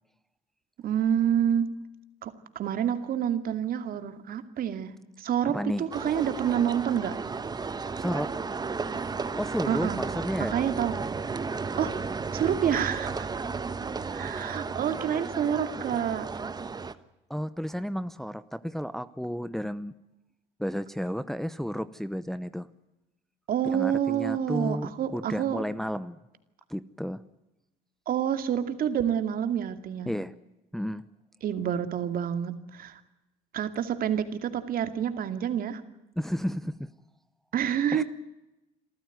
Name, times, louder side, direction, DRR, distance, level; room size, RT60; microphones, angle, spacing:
voice 1, 0.8-1.7 2.2-7.2 9.7-10.0 10.4-10.9 11.8-13.4 14.1-16.3 23.5-25.6 28.1-30.1 31.4-33.0 33.5-35.8 37.5-38.0, right 9 dB, 60° right, 10 dB, 2.4 m, -28 dB
voice 2, 5.5-5.9 8.0-8.3 9.4-10.6 17.3-19.9 20.6-22.7 23.7-26.2 26.7-27.2 30.1-30.3 30.7-31.0 36.2-36.9 37.9-38.0, equal, ahead, 13 dB, 0.8 m, -32 dB
sound 1, 5.9-16.9, right 4 dB, 25° right, 1.2 m, -33 dB
27.0 x 14.5 x 9.4 m, 0.97 s
cardioid pair, 110°, 17 cm